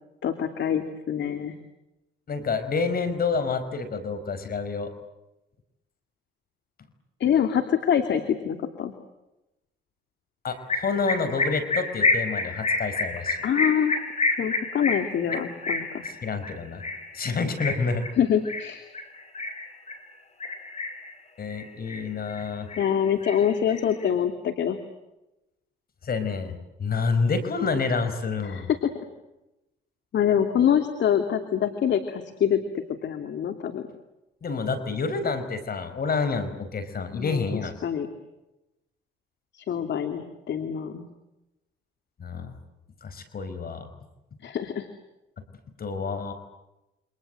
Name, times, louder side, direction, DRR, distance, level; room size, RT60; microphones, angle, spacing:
voice 1, 0.2-1.5 7.2-8.9 13.4-13.9 14.4-16.0 18.2-18.8 22.8-24.8 28.4-28.9 30.1-33.8 37.1-37.5 37.8-38.1 39.5-41.0 44.4-44.9, left 8 dB, 65° left, 8 dB, 2.8 m, -25 dB
voice 2, 2.3-4.9 10.4-13.4 16.0-16.8 17.1-18.1 21.4-22.7 26.0-28.7 34.4-37.7 42.2-42.5 43.0-43.9 45.8-46.3, left 4 dB, 50° left, 11 dB, 5.0 m, -28 dB
sound 1, 10.7-20.0 20.4-21.1 21.5-22.4 22.7-24.0, left 3 dB, 35° left, 5.8 m, -29 dB
29.5 x 26.0 x 7.8 m, 0.95 s
cardioid pair, 90°, 20 cm